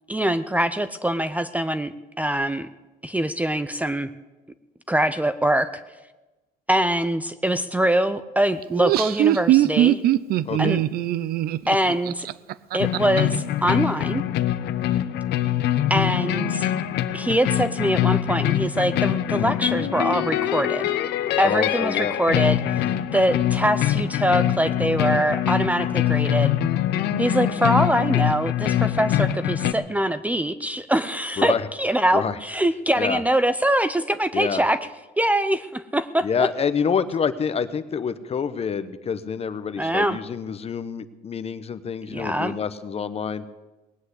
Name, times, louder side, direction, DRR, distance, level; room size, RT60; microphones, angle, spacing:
voice 1, 0.1-2.7 3.0-4.1 4.9-5.8 6.7-10.0 10.6-10.8 11.7-12.3 12.7-14.2 15.9-16.7 17.1-20.9 21.4-22.6 23.1-26.5 27.2-34.8 35.2-36.3 39.8-40.2 42.1-42.5, right 1 dB, 10° right, 12 dB, 0.6 m, -23 dB
Laughter, 8.6-13.2, right 13 dB, 65° right, 0.5 m, -21 dB
sound 1, 12.8-29.7, left 12 dB, 75° left, 0.8 m, -24 dB
voice 2, 21.4-22.1 22.8-23.0 31.4-31.7 32.1-32.4 33.0-33.2 34.3-34.6 36.2-43.4, left 6 dB, 35° left, 13 dB, 0.9 m, -27 dB
19.5 x 7.9 x 8.2 m, 1.1 s
cardioid pair, 110°, 17 cm